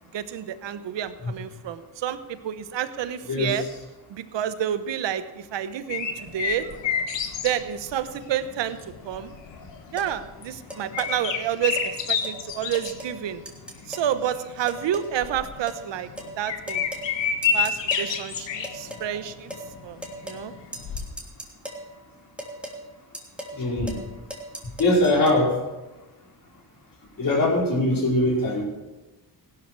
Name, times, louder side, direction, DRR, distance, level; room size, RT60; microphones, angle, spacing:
voice 1, 0.1-3.6 4.1-6.7 7.4-8.8 9.0-9.3 9.9-13.4 13.9-16.1 16.4-16.9 17.5-19.5 19.8-20.5, right 10 dB, 80° right, 12 dB, 1.1 m, -29 dB
sound 1, 5.9-21.1, left 6 dB, 80° left, 1.6 m, -30 dB
sound 2, 10.0-10.1 10.7-11.1 11.8-11.9 12.2-12.4 12.7-13.2 13.5-14.1 14.7-15.1 15.7-15.8 16.2-16.3 16.7-17.1 17.4-18.1 18.6-19.1 19.5-19.7 20.0-20.5 20.7-21.9 22.4-22.8 23.1-23.6 23.9-24.1 24.3-25.4, right 1 dB, 5° right, 3.2 m, -38 dB
voice 2, 23.5-24.0 24.8-25.6 27.2-28.6, left 1 dB, 50° left, -2 dB, 5.0 m, -21 dB
16.0 x 12.0 x 4.7 m, 1.1 s
cardioid pair, 75°, 43 cm